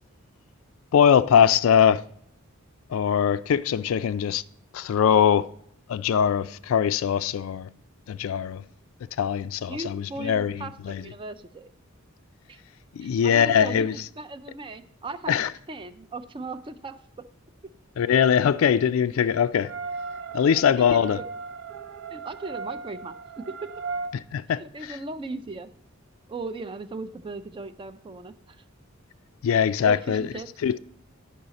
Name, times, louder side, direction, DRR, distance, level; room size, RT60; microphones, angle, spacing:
voice 1, 0.9-2.0 2.9-4.4 4.7-5.5 5.9-7.7 8.1-8.6 9.2-11.0 13.0-13.9 15.3-15.5 18.0-19.7 20.3-21.2 24.3-25.0 29.4-30.3 30.6-30.8, left 8 dB, 70° left, 0.3 m, -22 dB
voice 2, 9.7-11.7 12.5-12.6 13.0-15.3 15.7-17.0 20.5-21.3 22.1-23.7 24.6-25.7 26.3-28.6 29.8-30.5, right 3 dB, 25° right, 0.4 m, -37 dB
sound 1, 19.6-24.1, right 4 dB, 65° right, 0.6 m, -36 dB
10.0 x 5.6 x 4.0 m
head